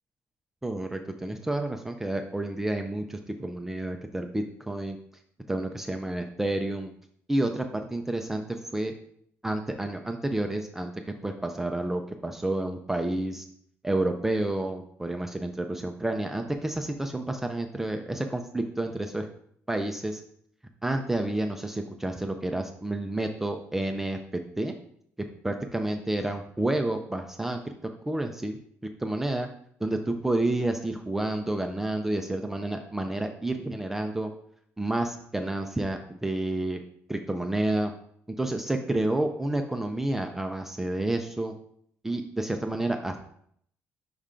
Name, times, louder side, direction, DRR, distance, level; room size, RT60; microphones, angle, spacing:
voice 1, 0.6-5.0 5.5-6.9 7.3-8.4 8.7-8.9 9.4-13.5 13.8-19.3 19.7-20.2 20.8-24.8 25.2-27.7 28.1-29.5 29.8-34.3 34.8-36.8 37.1-37.9 38.3-41.5 42.0-43.2, right 1 dB, 5° right, 4 dB, 0.4 m, -30 dB
5.5 x 3.6 x 5.0 m, 0.66 s
cardioid pair, 160°, 5 cm